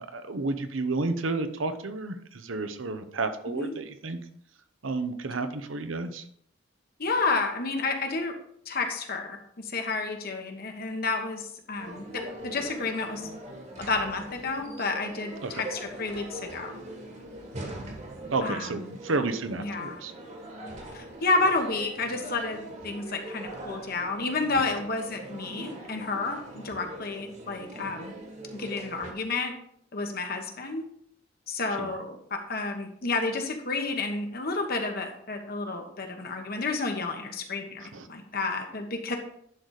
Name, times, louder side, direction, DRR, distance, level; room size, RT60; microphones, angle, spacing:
voice 1, 0.0-4.2 4.8-6.2 15.4-15.6 18.3-20.1 31.8-32.0 37.8-38.1, right 3 dB, 80° right, 9 dB, 0.8 m, -31 dB
voice 2, 7.0-8.3 8.7-13.3 13.8-16.8 18.4-18.7 19.6-20.0 20.9-28.1 28.5-29.5 29.9-30.8 31.5-39.2, left 3 dB, 50° left, 4 dB, 1.2 m, -30 dB
sound 1, 11.8-29.1, right 1 dB, 35° right, 1.6 m, -42 dB
11.0 x 4.1 x 4.9 m, 0.68 s
head